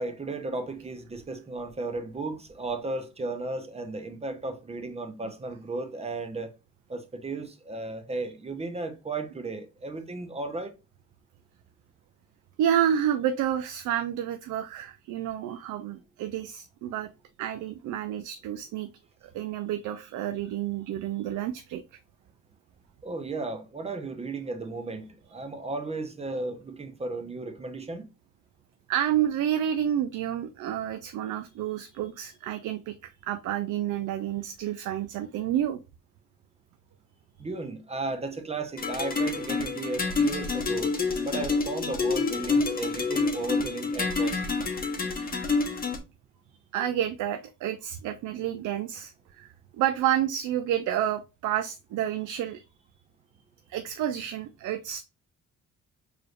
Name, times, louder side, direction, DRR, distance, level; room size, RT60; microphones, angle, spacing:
voice 1, 0.0-6.5 6.9-10.7 23.0-28.1 37.4-40.9 41.2-44.4 46.8-46.9, right 3 dB, 20° right, 0.8 m, -35 dB
voice 2, 12.6-17.1 17.4-18.9 19.3-21.8 28.9-32.9 33.3-35.8 46.7-49.1 49.4-52.6 53.7-55.0, right 10 dB, 80° right, 0.5 m, -29 dB
sound 1, 38.8-46.0, left 4 dB, 30° left, 0.9 m, -28 dB
4.7 x 3.3 x 2.4 m
cardioid pair, 90°, 30 cm